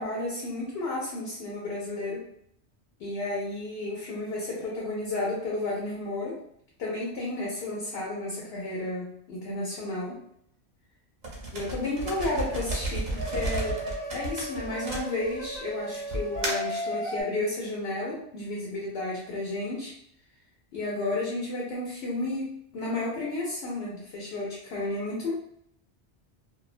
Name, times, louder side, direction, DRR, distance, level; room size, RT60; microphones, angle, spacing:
voice 1, 0.0-2.2 3.0-6.4 6.8-10.2 11.5-13.8 14.1-19.9 20.7-22.5 22.7-25.3, left 2 dB, 70° left, -4 dB, 0.9 m, -32 dB
sound 1, 11.2-15.5 16.1-16.8, right 2 dB, 45° right, 0.7 m, -33 dB
sound 2, 12.0-12.6 13.1-17.2, equal, 10° left, 0.6 m, -35 dB
2.3 x 2.2 x 2.4 m, 0.70 s
omnidirectional pair, 1.2 m